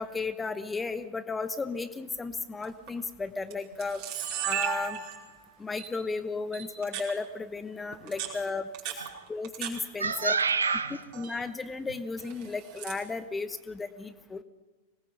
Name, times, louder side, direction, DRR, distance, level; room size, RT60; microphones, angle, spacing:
voice 1, 0.0-5.0 5.6-8.7 9.3-10.4 11.1-14.4, left 4 dB, 15° left, 12 dB, 1.0 m, -34 dB
Camera, 2.6-2.9 3.5-3.6 3.8-5.4 5.8-5.9 6.5-7.1 7.9-9.7 10.0-10.7 11.0-11.4 12.2-13.0, right 11 dB, 45° right, 5.0 m, -36 dB
voice 2, 10.0-11.1, right 5 dB, 75° right, 13 dB, 1.2 m, -28 dB
25.5 x 19.0 x 6.6 m, 1.2 s
figure-of-eight pair, 90°, 0 cm